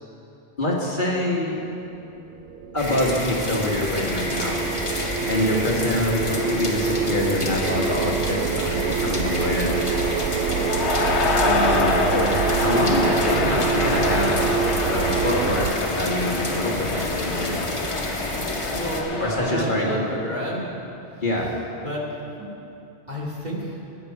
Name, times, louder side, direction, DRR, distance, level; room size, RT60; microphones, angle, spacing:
voice 1, 0.6-1.6 2.7-4.6 5.3-10.0 11.4-14.4 14.8-17.6 19.2-20.1 21.2-21.5, left 1 dB, 45° left, -3 dB, 1.9 m, -25 dB
sound 1, 2.1-15.7, right 6 dB, 75° right, 0.9 m, -26 dB
sound 2, 2.8-19.0, left 1 dB, 30° left, 1.5 m, -30 dB
sound 3, 9.5-19.5, left 4 dB, 80° left, 1.2 m, -27 dB
voice 2, 11.2-11.5 18.4-20.7 21.8-22.0 22.4-22.5 23.1-23.8, equal, 40° right, -5 dB, 2.5 m, -30 dB
19.5 x 9.4 x 4.8 m, 2.8 s
omnidirectional pair, 1.1 m